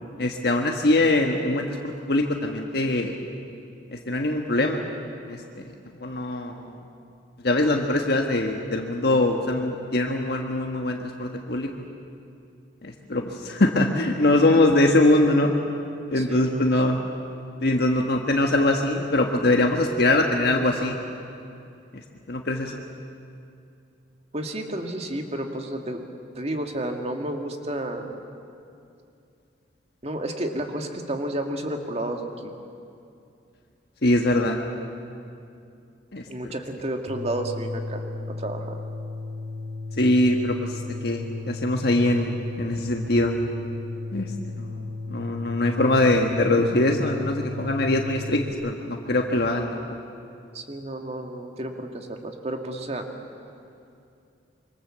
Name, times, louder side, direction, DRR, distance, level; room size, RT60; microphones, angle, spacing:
voice 1, 0.0-3.1 3.9-4.9 5.2-5.4 5.6-5.7 6.0-6.8 7.4-11.9 12.8-15.6 16.1-17.0 17.6-21.0 22.3-22.8 34.0-34.6 36.1-36.2 40.0-40.7 41.0-43.4 44.1-44.3 44.6-44.8 45.1-49.9, left 2 dB, 60° left, 2 dB, 1.5 m, -22 dB
voice 2, 16.2-16.7 24.3-26.0 26.4-28.1 30.0-32.6 36.3-38.8 50.5-53.1, right 1 dB, 35° right, 4 dB, 2.0 m, -31 dB
sound 1, 37.1-48.5, left 3 dB, 60° right, 3.3 m, -35 dB
25.5 x 24.5 x 7.5 m, 2.6 s
head